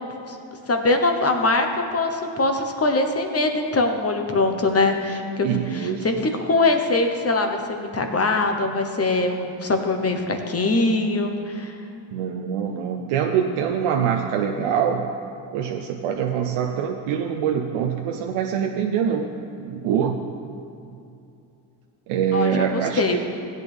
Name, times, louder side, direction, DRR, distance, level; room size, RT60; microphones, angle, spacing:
voice 1, 0.7-1.7 1.9-11.7 22.3-23.3, left 2 dB, 30° left, 4 dB, 1.1 m, -22 dB
voice 2, 5.4-6.1 12.1-15.1 15.5-19.3 19.6-20.2 22.1-23.2, right 8 dB, 85° right, 2 dB, 0.8 m, -24 dB
16.0 x 8.4 x 3.5 m, 2.7 s
cardioid pair, 95°, 49 cm